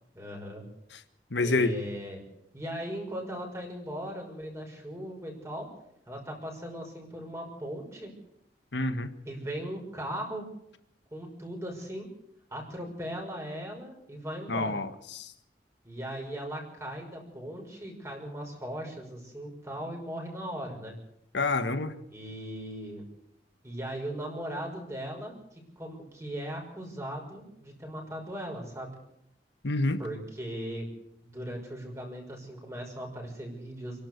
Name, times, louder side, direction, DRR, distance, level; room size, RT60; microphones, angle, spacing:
voice 1, 0.1-0.6 1.4-2.2 2.5-5.7 6.1-8.1 9.3-10.4 11.1-12.1 12.5-14.8 15.8-20.9 22.1-23.0 23.6-28.9 30.0-30.9 31.2-34.1, equal, 15° right, 0 dB, 6.0 m, -38 dB
voice 2, 1.3-1.7 8.7-9.1 14.5-14.9 15.1-15.3 21.3-21.9 29.6-30.0, left 2 dB, 85° left, 11 dB, 1.6 m, -27 dB
28.0 x 12.0 x 8.3 m, 0.77 s
head